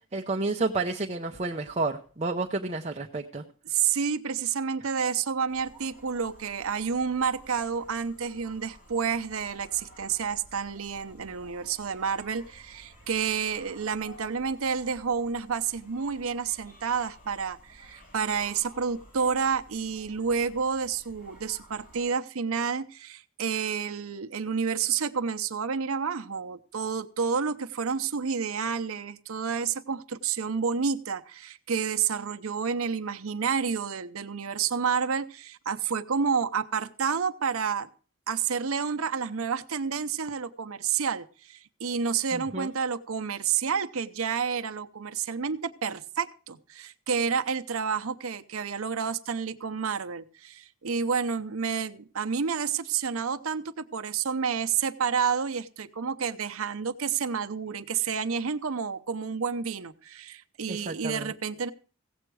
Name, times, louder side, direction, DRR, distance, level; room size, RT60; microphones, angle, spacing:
voice 1, 0.1-3.4 42.3-42.7 60.7-61.3, right 3 dB, 30° right, 2 dB, 0.7 m, -30 dB
voice 2, 3.6-37.9 38.3-61.7, right 6 dB, 75° right, 9 dB, 0.7 m, -29 dB
sound 1, 5.5-22.1, equal, 45° left, 4.3 m, -53 dB
16.0 x 7.8 x 4.7 m, 0.40 s
head